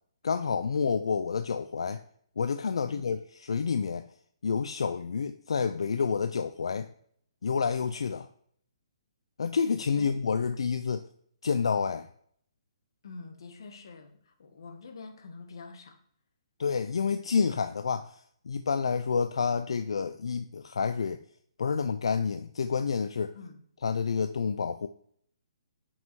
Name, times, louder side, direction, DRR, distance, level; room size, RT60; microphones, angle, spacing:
voice 1, 0.2-2.0 2.4-4.1 4.4-6.9 7.4-8.3 9.4-11.1 11.4-12.1 16.6-21.2 21.6-23.3 23.8-24.9, left 5 dB, 80° left, 9 dB, 0.4 m, -29 dB
voice 2, 9.9-10.5 13.0-16.0 23.3-23.6, left 4 dB, 55° left, 5 dB, 1.3 m, -46 dB
5.4 x 5.4 x 4.7 m, 0.65 s
hypercardioid pair, 175°, 3 cm